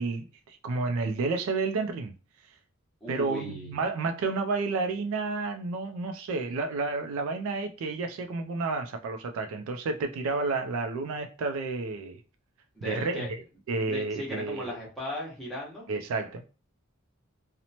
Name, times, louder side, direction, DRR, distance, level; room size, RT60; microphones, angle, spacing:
voice 1, 0.0-2.1 3.1-12.2 12.8-13.3 13.7-14.8 15.9-16.5, right 3 dB, 70° right, 0.3 m, -31 dB
voice 2, 3.0-3.8 12.7-13.3 13.9-15.9, left 1 dB, ahead, 0.9 m, -37 dB
2.8 x 2.0 x 2.7 m
head